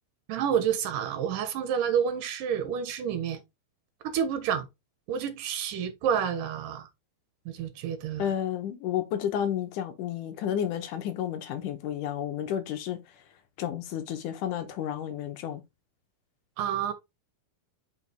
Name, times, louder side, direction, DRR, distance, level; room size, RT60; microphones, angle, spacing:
voice 1, 0.3-3.4 4.0-4.7 5.1-6.9 7.5-8.3 16.6-16.9, right 8 dB, 75° right, 2.7 m, -29 dB
voice 2, 8.2-13.0 13.6-15.6, left 10 dB, 75° left, 2.4 m, -31 dB
5.7 x 5.7 x 3.4 m
omnidirectional pair, 3.9 m